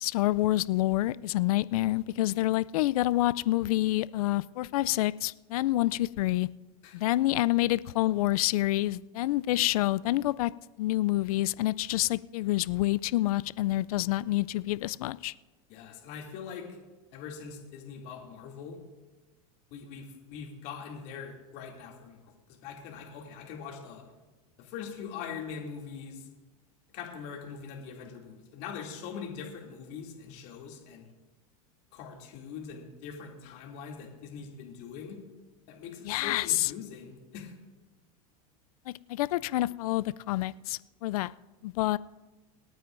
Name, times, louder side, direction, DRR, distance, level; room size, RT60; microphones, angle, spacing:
voice 1, 0.0-6.5 6.9-10.5 10.8-15.3 36.0-36.7 38.9-41.3 41.6-42.0, left 16 dB, 75° left, 19 dB, 0.4 m, -27 dB
voice 2, 15.7-16.7 17.1-18.8 19.7-22.2 22.5-24.0 24.6-26.3 26.9-31.1 31.9-35.2 35.7-37.5, left 6 dB, 60° left, 0 dB, 2.5 m, -42 dB
27.5 x 9.3 x 2.5 m, 1.2 s
hypercardioid pair, 110°, 19 cm